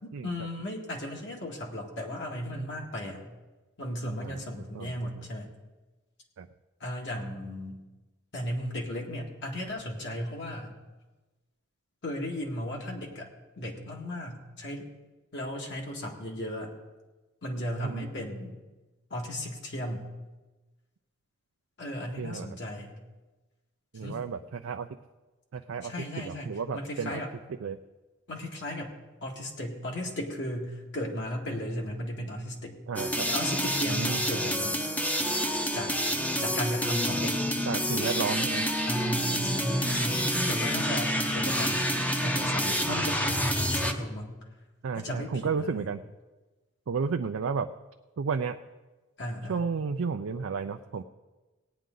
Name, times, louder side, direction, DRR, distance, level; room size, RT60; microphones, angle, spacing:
voice 1, 0.0-3.2 3.8-5.5 6.8-7.8 8.3-10.7 12.0-13.3 13.6-14.9 15.3-16.7 17.4-18.5 19.1-20.1 21.8-23.0 24.0-24.2 25.8-27.3 28.3-28.9 29.2-32.8 33.3-34.7 35.7-35.9 36.4-37.4 38.8-41.9 42.2-44.4 45.0-45.9 49.2-49.6, equal, 60° left, -1 dB, 1.9 m, -35 dB
voice 2, 4.7-5.3 6.4-6.5 17.8-18.1 22.2-22.5 23.9-24.9 25.5-27.2 27.6-27.8 32.9-33.3 33.9-34.2 37.7-38.7 44.8-46.0 46.9-47.7 48.2-48.6 49.5-51.0, right 5 dB, 65° right, 6 dB, 0.4 m, -32 dB
sound 1, 33.0-43.9, equal, 5° left, 0.7 m, -28 dB
18.0 x 9.4 x 3.9 m, 1.2 s
head